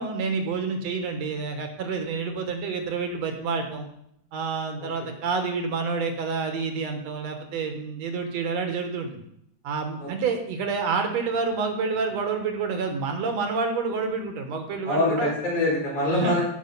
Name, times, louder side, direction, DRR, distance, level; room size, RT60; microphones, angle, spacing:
voice 1, 0.0-3.9 4.3-9.2 9.6-15.3 16.1-16.4, right 4 dB, 65° right, 5 dB, 2.4 m, -28 dB
voice 2, 14.9-16.5, left 1 dB, 85° left, -3 dB, 5.7 m, -25 dB
15.5 x 6.0 x 5.6 m, 0.75 s
omnidirectional pair, 3.3 m